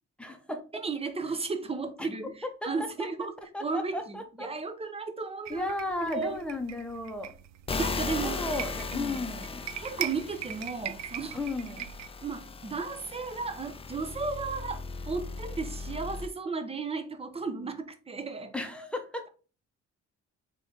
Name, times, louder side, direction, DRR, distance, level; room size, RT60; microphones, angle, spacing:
voice 1, 0.2-0.8 2.0-2.1 2.6-2.9 3.5-4.5 5.5-7.3 8.2-9.7 11.3-11.9 18.5-19.2, left 2 dB, 5° left, 1.0 m, -35 dB
voice 2, 0.7-3.3 3.6-5.7 6.0-6.4 7.8-8.4 8.9-9.2 9.8-11.4 12.2-18.5, right 4 dB, 20° right, 0.7 m, -34 dB
sound 1, 5.4-12.1, right 11 dB, 65° right, 0.5 m, -41 dB
sound 2, 7.7-16.3, left 4 dB, 20° left, 0.4 m, -38 dB
3.8 x 3.3 x 3.9 m
cardioid pair, 90°, 30 cm